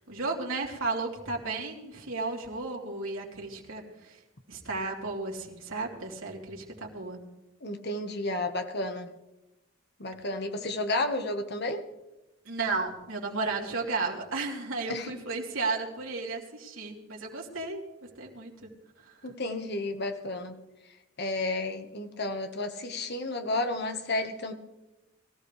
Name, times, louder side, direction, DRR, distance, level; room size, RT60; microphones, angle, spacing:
voice 1, 0.0-4.2 4.5-7.2 12.5-17.8 18.2-18.7 19.1-19.2, right 3 dB, 85° right, -1 dB, 3.7 m, -34 dB
voice 2, 7.6-9.1 10.0-11.8 14.9-15.1 19.2-20.6 21.2-24.5, left 2 dB, 55° left, 6 dB, 1.5 m, -32 dB
22.5 x 15.5 x 3.4 m, 0.98 s
head